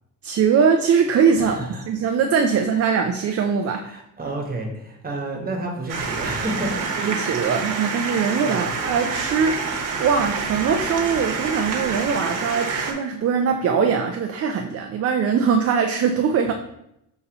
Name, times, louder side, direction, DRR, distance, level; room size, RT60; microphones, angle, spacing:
voice 1, 0.2-1.6 1.9-3.8 7.0-9.7 10.0-16.5, right 6 dB, 40° right, 5 dB, 0.4 m, -21 dB
voice 2, 1.4-1.8 3.8-6.9 8.5-8.7, right 2 dB, 25° right, 1 dB, 1.2 m, -30 dB
sound 1, 5.9-12.9, right 4 dB, 60° right, 1.1 m, -27 dB
6.7 x 2.7 x 2.9 m, 0.81 s
cardioid pair, 90°, 37 cm